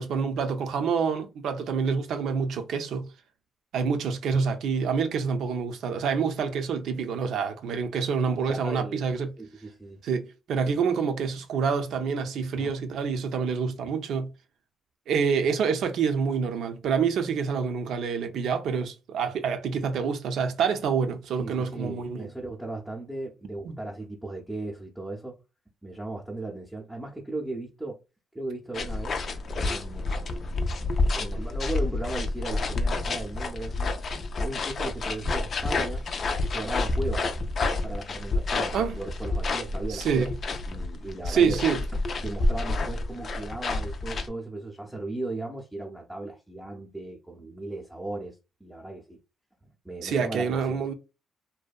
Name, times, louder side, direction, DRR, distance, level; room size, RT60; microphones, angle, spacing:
voice 1, 0.0-3.1 3.7-9.3 10.0-14.3 15.1-22.3 23.6-23.8 38.7-39.0 39.9-40.3 41.3-41.8 50.0-50.9, right 6 dB, 75° right, 0.5 m, -27 dB
voice 2, 8.5-9.1 9.4-10.0 12.5-12.8 21.4-25.4 25.8-28.0 28.3-29.2 29.6-30.2 31.2-33.9 34.4-36.0 36.4-37.3 37.8-40.3 40.7-41.6 42.2-49.2 49.8-50.8, right 2 dB, 5° right, 0.6 m, -36 dB
sound 1, 28.7-44.3, left 2 dB, 50° left, 0.4 m, -29 dB
2.6 x 2.2 x 2.3 m
cardioid pair, 90°, 0 cm